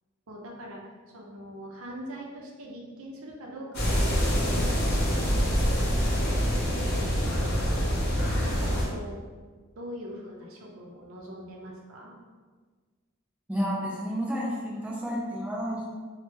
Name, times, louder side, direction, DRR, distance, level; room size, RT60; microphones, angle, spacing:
voice 1, 0.3-5.0 5.4-7.5 8.2-9.2 9.8-12.1, equal, 70° right, -1 dB, 0.5 m, -42 dB
sound 1, 3.7-8.9, equal, 50° left, 0.8 m, -25 dB
voice 2, 13.5-15.9, equal, 5° right, -5 dB, 0.5 m, -31 dB
3.1 x 2.1 x 3.2 m, 1.5 s
head